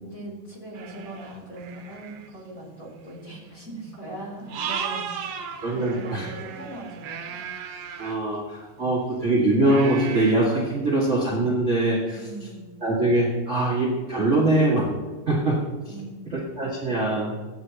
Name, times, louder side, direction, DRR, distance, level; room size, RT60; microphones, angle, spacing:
voice 1, 0.0-7.5 12.1-12.7 15.9-16.4, right 1 dB, 25° left, -5 dB, 2.9 m, -40 dB
sound 1, 0.7-2.3 3.1-3.2 3.5-3.6 4.5-8.2 9.7-10.3, right 7 dB, 85° right, 2.9 m, -35 dB
voice 2, 5.6-6.3 8.0-12.2 12.8-14.9 15.3-15.6 15.8-15.9 16.3-17.4, right 2 dB, 45° right, -5 dB, 0.9 m, -23 dB
16.5 x 9.0 x 2.9 m, 1.4 s
omnidirectional pair, 4.4 m